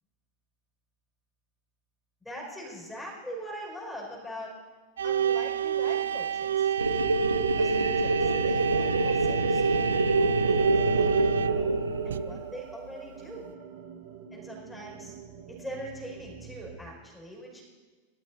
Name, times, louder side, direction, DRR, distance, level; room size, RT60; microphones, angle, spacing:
voice 1, 2.2-4.5 5.0-6.8 7.5-9.6 10.1-13.5 14.3-15.1 15.5-17.6, equal, 5° left, -2 dB, 4.7 m, -42 dB
sound 1, 5.0-12.9, right 9 dB, 65° right, 0.3 m, -30 dB
sound 2, 6.8-12.5, right 3 dB, 80° right, 1.0 m, -25 dB
sound 3, 10.6-16.8, right 8 dB, 45° right, 1.4 m, -46 dB
18.5 x 12.0 x 4.2 m, 1.4 s
figure-of-eight pair, 90°, 0 cm